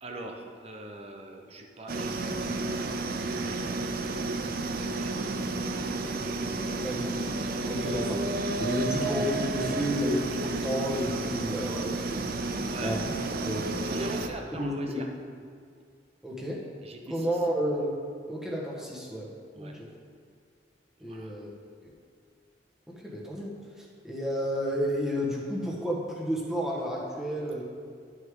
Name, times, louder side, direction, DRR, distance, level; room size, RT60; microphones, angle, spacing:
voice 1, 0.0-6.9 12.6-12.9 13.8-15.1 16.8-17.4 19.5-19.7 21.0-21.3, right 1 dB, 35° right, 2 dB, 1.0 m, -43 dB
sound 1, 1.9-14.3, right 2 dB, 55° right, 0.6 m, -31 dB
voice 2, 7.6-12.3 12.8-13.1 13.4-13.9 14.6-15.0 16.2-16.6 17.1-17.9 18.3-19.3 19.5-19.9 21.0-21.5 22.9-23.5 23.8-27.6, equal, 5° right, -4 dB, 1.5 m, -31 dB
12.5 x 6.4 x 3.8 m, 2.2 s
head